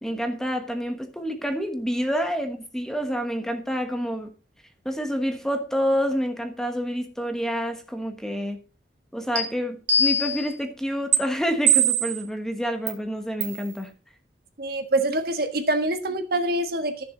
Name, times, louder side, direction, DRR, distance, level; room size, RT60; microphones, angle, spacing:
voice 1, 0.0-4.3 4.8-8.6 9.1-13.9, equal, 5° left, 1.2 m, -28 dB
sound 1, 9.4-9.5 9.9-10.5 11.1-11.2 11.7-12.2 12.9-13.0 13.4-13.6, right 4 dB, 80° right, 2.6 m, -21 dB
voice 2, 14.6-17.0, right 1 dB, 55° right, 1.4 m, -25 dB
14.0 x 6.9 x 3.9 m
head